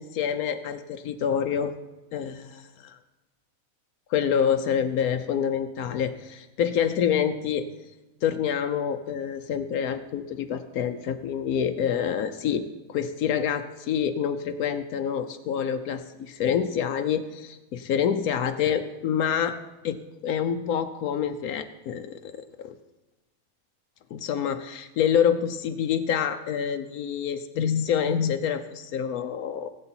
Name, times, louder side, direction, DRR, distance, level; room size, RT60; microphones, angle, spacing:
voice 1, 0.0-1.7 2.1-2.6 4.1-7.7 8.2-19.6 19.8-20.0 20.2-22.7 24.1-29.7, left 8 dB, 90° left, 7 dB, 1.2 m, -27 dB
19.0 x 7.8 x 4.3 m, 1.1 s
omnidirectional pair, 1.5 m